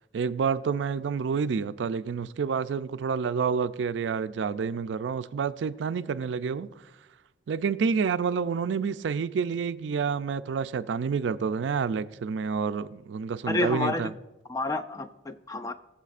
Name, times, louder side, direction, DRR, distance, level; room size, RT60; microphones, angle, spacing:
voice 1, 0.1-6.7 7.5-14.1, right 6 dB, 75° right, 0.4 m, -28 dB
voice 2, 13.5-14.1 14.5-15.7, left 2 dB, 20° left, 0.4 m, -29 dB
21.0 x 7.4 x 2.5 m
head